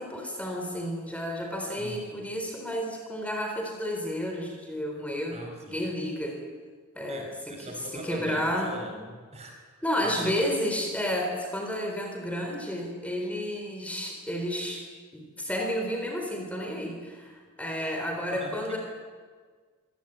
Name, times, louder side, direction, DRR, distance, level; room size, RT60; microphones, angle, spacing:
voice 1, 0.0-5.5 5.7-6.4 7.0-7.2 8.0-8.7 9.8-14.8 15.1-18.8, equal, 5° left, 2 dB, 3.9 m, -31 dB
voice 2, 1.8-2.2 5.3-5.8 7.1-10.3 18.2-18.8, right 1 dB, 30° right, 3 dB, 4.7 m, -43 dB
24.5 x 18.5 x 9.1 m, 1.5 s
head